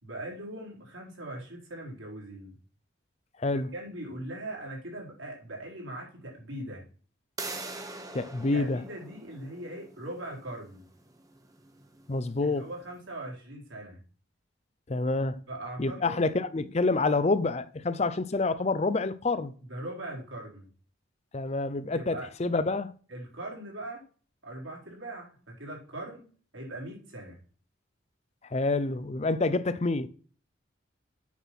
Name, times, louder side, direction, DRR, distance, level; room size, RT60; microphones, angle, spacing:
voice 1, 0.0-2.6 3.7-6.8 8.5-10.8 12.4-14.0 15.5-16.2 19.6-20.7 21.9-22.3 23.1-24.1 24.4-27.4, right 1 dB, 80° right, 4.2 m, -40 dB
voice 2, 3.4-3.7 8.1-8.8 12.1-12.7 14.9-15.4 15.8-19.5 21.3-22.9 28.5-30.1, left 3 dB, 35° left, 0.5 m, -27 dB
sound 1, 7.4-13.0, right 3 dB, 20° right, 1.1 m, -44 dB
8.3 x 6.0 x 5.9 m
head